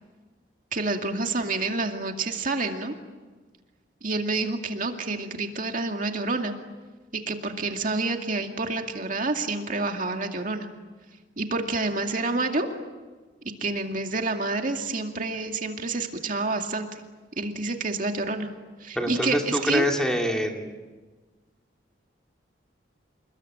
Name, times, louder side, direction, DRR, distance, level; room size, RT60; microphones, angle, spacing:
voice 1, 0.7-2.9 4.0-6.6 7.1-10.7 11.4-12.7 13.6-17.0 17.4-18.5 18.8-19.9, right 3 dB, 45° right, 4 dB, 2.3 m, -28 dB
voice 2, 18.9-20.7, equal, 5° left, 2 dB, 2.5 m, -25 dB
28.5 x 21.5 x 9.1 m, 1.3 s
head